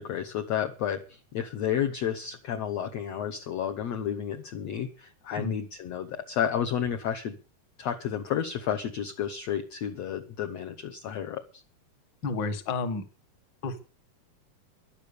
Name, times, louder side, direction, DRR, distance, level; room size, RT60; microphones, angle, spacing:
voice 1, 0.0-7.4 7.8-11.6, left 9 dB, 60° left, 5 dB, 2.0 m, -31 dB
voice 2, 12.2-13.0 13.6-13.8, left 4 dB, 40° left, 9 dB, 2.0 m, -30 dB
14.0 x 11.5 x 6.8 m, 0.35 s
omnidirectional pair, 4.0 m